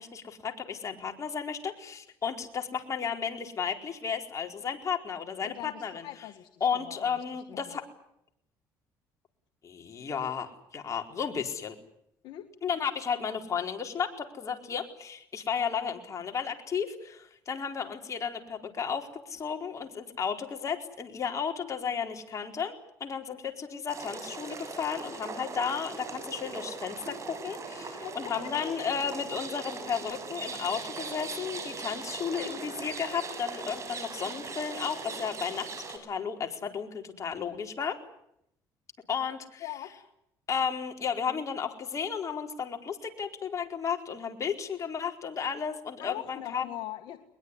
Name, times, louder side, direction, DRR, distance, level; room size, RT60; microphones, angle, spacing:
voice 1, 0.0-6.1 6.6-7.8 9.6-11.7 12.6-38.0 39.1-39.6 40.5-46.6, left 7 dB, 40° left, 3 dB, 4.3 m, -33 dB
voice 2, 5.4-7.2 7.5-7.8 12.2-12.5 28.0-28.8 39.6-39.9 46.0-47.2, left 13 dB, 70° left, 6 dB, 2.0 m, -42 dB
sound 1, 23.9-36.0, right 4 dB, 40° right, 7.5 m, -40 dB
21.5 x 21.5 x 9.8 m, 0.77 s
supercardioid pair, 90°, 8 cm